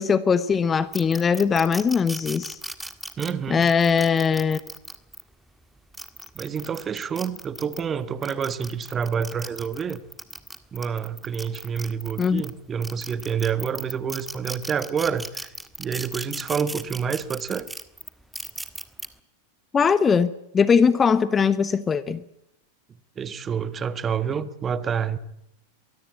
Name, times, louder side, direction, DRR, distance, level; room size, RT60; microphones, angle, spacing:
voice 1, 0.0-2.6 3.5-4.6 12.2-12.4 19.7-22.2, left 6 dB, 20° left, 16 dB, 1.1 m, -20 dB
sound 1, 0.9-5.2 5.8-7.8 8.2-12.5 12.8-19.1, right 1 dB, 5° right, 1.7 m, -37 dB
voice 2, 3.2-3.7 6.3-10.0 10.7-15.5 15.8-17.7 23.2-25.2, right 7 dB, 20° right, 14 dB, 1.6 m, -28 dB
23.5 x 22.0 x 8.5 m, 0.83 s
figure-of-eight pair, 90°, 0 cm